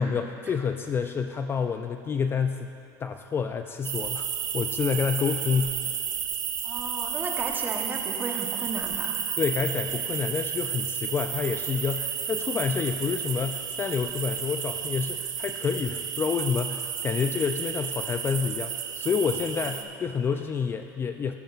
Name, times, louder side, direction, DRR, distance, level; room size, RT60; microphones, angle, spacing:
voice 1, 0.0-2.7 3.0-4.3 4.5-5.9 9.4-21.3, left 6 dB, 25° left, 7 dB, 0.3 m, -28 dB
sound 1, 3.8-19.8, right 8 dB, 45° right, 0.8 m, -32 dB
voice 2, 6.6-9.2 19.6-19.7, right 3 dB, 20° right, 2 dB, 1.0 m, -34 dB
17.0 x 8.9 x 2.4 m, 2.5 s
supercardioid pair, 120°, 9 cm